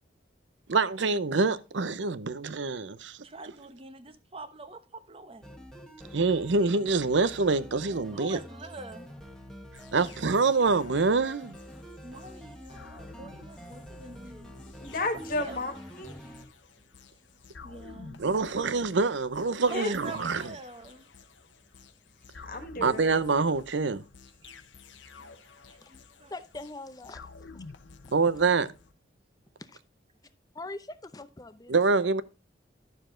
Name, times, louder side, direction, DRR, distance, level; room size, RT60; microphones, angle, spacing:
voice 1, 0.7-3.2 6.1-8.4 9.9-11.5 18.2-20.5 22.8-24.0 28.1-28.7 31.7-32.2, right 4 dB, 80° right, 0.7 m, -25 dB
voice 2, 3.2-5.5 8.1-9.1 10.0-10.2 12.0-14.5 15.4-15.6 17.6-18.6 19.7-21.1 22.4-22.6 25.7-26.3, right 2 dB, 30° right, 1.0 m, -44 dB
sound 1, 5.4-16.5, equal, 5° left, 1.3 m, -47 dB
sound 2, 9.7-28.9, left 4 dB, 90° left, 1.0 m, -51 dB
voice 3, 14.8-16.1 19.7-19.9 22.5-23.1, left 2 dB, 50° left, 1.6 m, -33 dB
voice 4, 26.3-27.3 27.5-27.7 29.6-29.8 30.5-31.7, left 2 dB, 20° left, 0.7 m, -42 dB
11.5 x 6.9 x 3.8 m
head